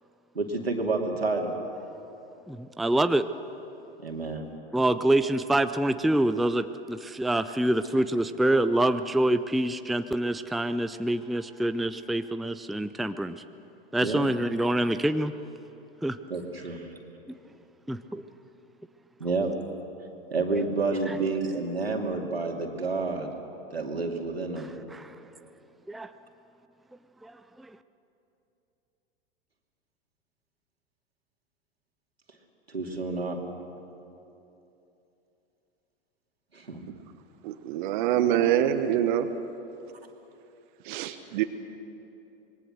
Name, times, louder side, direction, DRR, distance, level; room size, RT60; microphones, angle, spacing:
voice 1, 0.3-1.5 4.0-4.4 14.0-14.3 16.3-16.9 19.2-19.5 20.3-23.3 23.7-24.7 32.7-33.4 36.5-36.8, right 3 dB, 85° right, 2 dB, 2.7 m, -29 dB
voice 2, 2.5-3.3 4.7-13.4 13.9-15.3 16.0-16.2 17.9-18.2 21.1-21.2 24.9-25.1 25.9-26.1 27.2-27.4, right 1 dB, ahead, 10 dB, 0.5 m, -26 dB
voice 3, 37.4-39.3 40.8-41.4, right 11 dB, 55° right, 8 dB, 1.3 m, -25 dB
26.0 x 22.0 x 6.6 m, 2.9 s
figure-of-eight pair, 90°, 30 cm